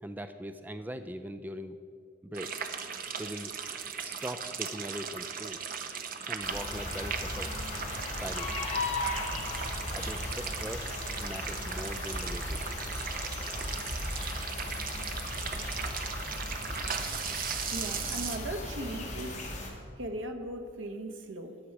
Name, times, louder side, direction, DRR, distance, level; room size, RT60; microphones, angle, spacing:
voice 1, 0.0-1.8 2.2-2.6 3.2-3.5 4.0-5.7 6.2-7.6 8.1-8.7 9.9-10.9 11.2-12.8, right 1 dB, 10° right, 9 dB, 0.3 m, -41 dB
sound 1, 2.3-18.4, right 6 dB, 45° right, 0.8 m, -38 dB
sound 2, 6.4-19.7, left 2 dB, 40° left, 2.2 m, -37 dB
voice 2, 17.7-19.4 20.0-21.6, right 1 dB, 75° right, 6 dB, 1.2 m, -38 dB
14.0 x 9.9 x 4.8 m, 2.5 s
head